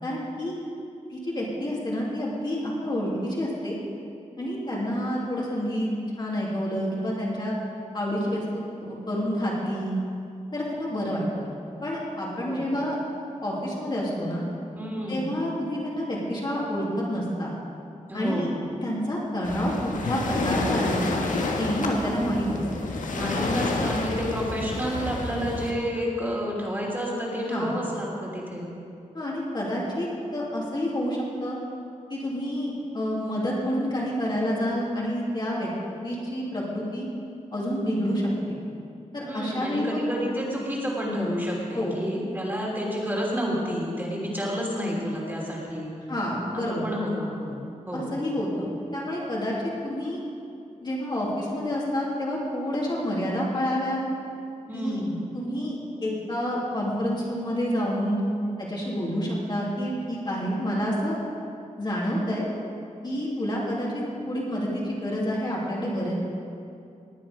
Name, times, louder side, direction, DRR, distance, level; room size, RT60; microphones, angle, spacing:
voice 1, 0.0-0.6 1.1-3.8 4.4-5.9 6.2-7.6 7.9-10.0 10.5-11.5 11.8-12.9 13.4-14.5 15.1-17.5 18.1-18.5 18.8-21.0 21.6-22.6 27.5-27.7 29.1-31.6 32.1-35.7 36.0-37.1 37.5-38.6 39.1-40.0 41.7-42.0 46.1-46.8 47.9-49.5 49.8-50.2 50.8-54.0 54.7-55.0 55.3-58.2 58.6-61.2 61.8-62.5 63.0-66.1, equal, 35° left, -5 dB, 2.7 m, -28 dB
voice 2, 12.4-12.7 14.8-15.4 18.1-18.6 23.1-28.7 39.2-45.9 46.5-48.1 54.7-55.2, equal, 15° right, -4 dB, 3.0 m, -30 dB
Waves surf, 19.4-25.7, left 2 dB, 85° left, 1.5 m, -29 dB
19.0 x 9.5 x 5.2 m, 2.5 s
wide cardioid pair, 135°, 13 cm